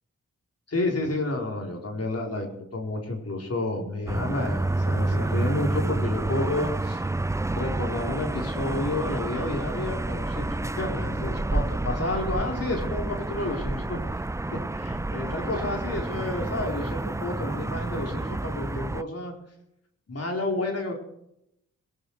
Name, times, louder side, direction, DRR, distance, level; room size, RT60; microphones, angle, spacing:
voice 1, 0.7-2.5 2.7-7.0 7.5-14.2 14.5-19.3 20.1-20.9, left 2 dB, 50° left, 1 dB, 4.4 m, -30 dB
sound 1, 4.1-19.0, right 2 dB, 10° right, 0.5 m, -29 dB
17.0 x 16.5 x 4.9 m, 0.79 s
supercardioid pair, 40°, 31 cm